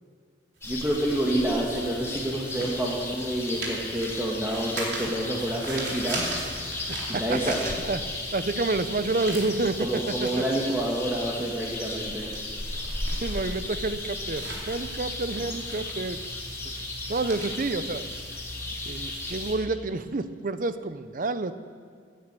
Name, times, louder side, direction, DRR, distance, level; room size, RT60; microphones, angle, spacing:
sound 1, 0.6-19.5, left 2 dB, 15° left, 2.1 m, -35 dB
voice 1, 0.6-6.4 7.1-7.6 9.8-12.3, right 1 dB, 15° right, -4 dB, 1.6 m, -28 dB
sound 2, 0.6-8.3 8.6-18.7, right 2 dB, 75° right, 3.8 m, -39 dB
voice 2, 6.9-7.4 7.9-8.0 8.3-9.9 10.2-10.3 13.2-16.2 17.1-18.1 18.9-21.5, right 3 dB, 50° right, 12 dB, 0.6 m, -29 dB
18.0 x 10.5 x 6.8 m, 2.1 s
head